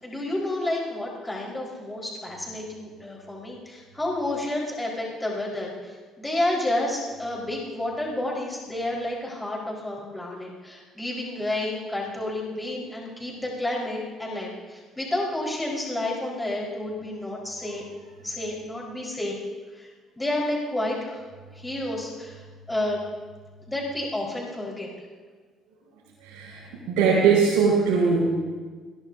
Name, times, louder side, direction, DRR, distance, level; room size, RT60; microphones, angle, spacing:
voice 1, 0.0-17.8 18.2-19.4 19.7-19.9 20.2-21.2 21.5-23.0 23.7-24.9, left 1 dB, 15° left, -3 dB, 4.9 m, -30 dB
voice 2, 26.2-28.3, right 5 dB, 80° right, -7 dB, 5.3 m, -21 dB
22.0 x 21.5 x 2.8 m, 1.5 s
supercardioid pair, 65°, 0 cm